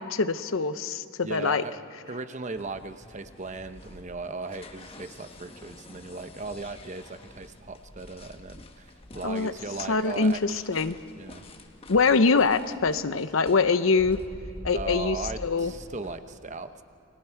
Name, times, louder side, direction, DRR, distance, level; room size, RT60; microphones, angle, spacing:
voice 1, 0.0-1.6 9.2-9.5 9.9-11.0 11.9-14.2 14.6-15.2 15.4-15.7, left 4 dB, 80° left, 12 dB, 0.8 m, -24 dB
voice 2, 1.2-1.8 2.0-10.8 11.2-11.4 14.7-16.8, right 3 dB, 35° right, 9 dB, 0.8 m, -38 dB
sound 1, 2.5-16.2, left 1 dB, 30° left, 1.2 m, -46 dB
30.0 x 21.5 x 4.6 m, 2.7 s
head